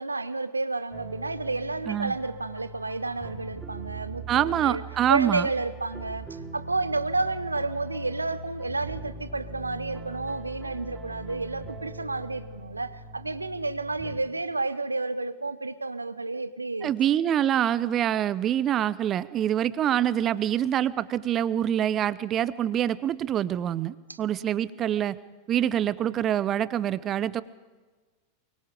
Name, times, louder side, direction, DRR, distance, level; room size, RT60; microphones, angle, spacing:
voice 1, 0.0-4.8 5.1-16.9 24.1-24.5 24.8-24.9, right 3 dB, 80° right, 0.9 m, -31 dB
sound 1, 0.9-14.2, right 2 dB, 15° right, 4.8 m, -41 dB
voice 2, 4.3-5.5 16.8-25.1 25.5-27.4, right 10 dB, 30° right, 0.8 m, -25 dB
23.5 x 21.5 x 5.1 m
figure-of-eight pair, 90°, 0 cm